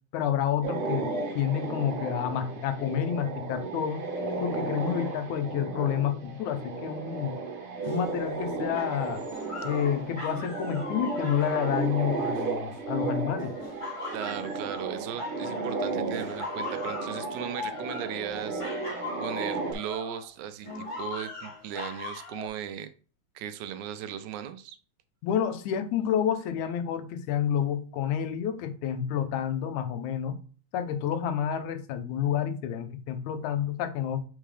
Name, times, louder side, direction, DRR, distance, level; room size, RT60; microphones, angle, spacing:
voice 1, 0.1-4.1 4.4-7.4 7.9-9.2 9.6-13.5 25.2-30.4 30.7-34.2, left 9 dB, 85° left, 2.2 m, -29 dB
sound 1, 0.6-19.7, right 3 dB, 55° right, 1.8 m, -34 dB
sound 2, 7.8-12.8 13.4-15.9 16.1-20.3 20.6-22.5, left 3 dB, 20° left, 0.9 m, -40 dB
voice 2, 14.1-18.6 19.2-22.9 23.4-24.8, right 9 dB, 85° right, 2.0 m, -37 dB
7.5 x 4.4 x 3.3 m
omnidirectional pair, 3.4 m